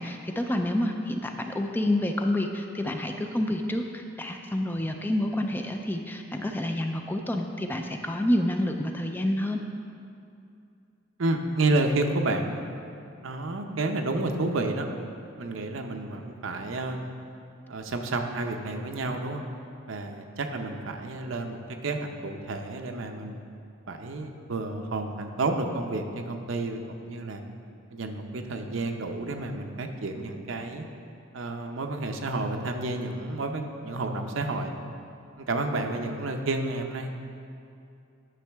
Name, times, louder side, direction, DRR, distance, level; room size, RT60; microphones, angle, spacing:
voice 1, 0.0-9.6, left 1 dB, 10° left, 4 dB, 0.3 m, -28 dB
voice 2, 11.2-12.7 13.2-14.9 15.4-17.1 17.7-19.4 19.9-23.4 23.9-27.4 27.9-30.8 31.3-34.7 35.4-37.1, right 2 dB, 80° right, 5 dB, 0.7 m, -30 dB
10.0 x 6.4 x 3.5 m, 2.6 s
head